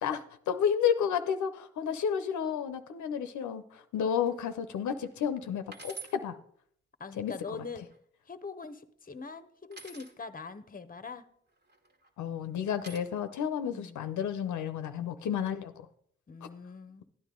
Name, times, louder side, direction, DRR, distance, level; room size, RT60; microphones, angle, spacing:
voice 1, 0.5-6.4 7.2-7.3 12.2-15.9, left 8 dB, 85° left, 10 dB, 0.6 m, -31 dB
sound 1, 4.2-4.5 5.0-5.1 5.7-6.2 7.3-8.0 9.7-10.1 11.6-12.1 12.8-13.0, right 4 dB, 35° right, 1.6 m, -47 dB
voice 2, 7.0-7.8 8.2-11.2 13.7-14.0 16.3-17.0, left 4 dB, 30° left, 13 dB, 0.8 m, -43 dB
12.0 x 9.3 x 3.7 m, 0.65 s
cardioid pair, 50°, 29 cm